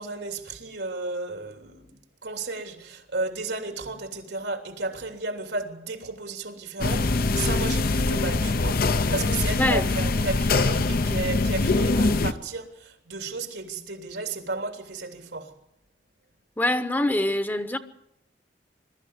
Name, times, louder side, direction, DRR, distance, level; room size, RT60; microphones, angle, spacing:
voice 1, 0.0-8.8 9.1-15.5, right 3 dB, 90° right, 3.3 m, -33 dB
sound 1, 6.8-12.3, left 3 dB, 60° left, 0.7 m, -23 dB
voice 2, 9.6-9.9 16.6-17.8, left 1 dB, 10° left, 0.9 m, -24 dB
21.5 x 13.5 x 9.5 m
head